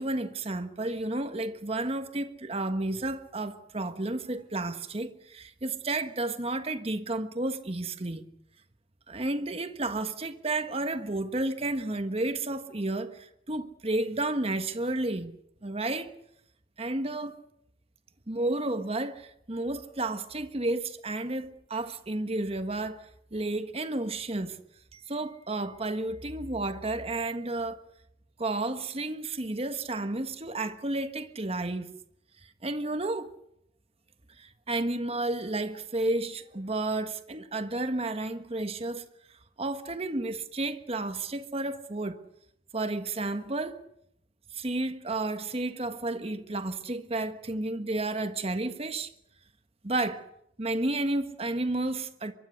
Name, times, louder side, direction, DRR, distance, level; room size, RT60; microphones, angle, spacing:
voice 1, 0.0-8.3 9.1-16.1 16.8-17.4 18.3-24.6 24.9-27.8 28.4-31.9 32.6-33.3 34.4-39.1 39.6-42.2 42.7-43.8 44.5-49.1 49.8-50.2 50.6-52.3, right 2 dB, 35° right, 1.4 m, -32 dB
24.0 x 23.0 x 6.5 m
head